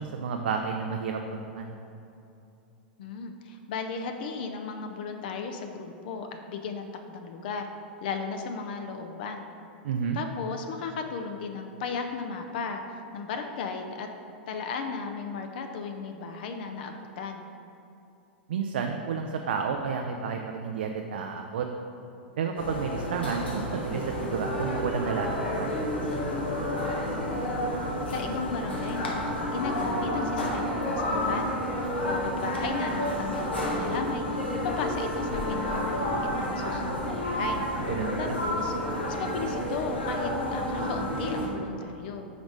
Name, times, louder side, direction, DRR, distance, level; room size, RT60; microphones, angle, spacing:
voice 1, 0.0-1.7 9.8-10.2 18.5-21.7 22.4-25.8 37.9-38.4, right 6 dB, 70° right, 3 dB, 0.4 m, -31 dB
voice 2, 3.0-7.7 8.0-9.4 10.1-12.8 13.1-14.1 14.5-17.4 26.8-27.7 28.1-31.5 31.8-37.9 38.2-38.7 39.1-42.3, left 5 dB, 60° left, 5 dB, 0.4 m, -35 dB
sound 1, 22.6-41.5, equal, 85° left, 1.0 m, -30 dB
5.0 x 4.0 x 4.7 m, 2.8 s
hypercardioid pair, 95°, 6 cm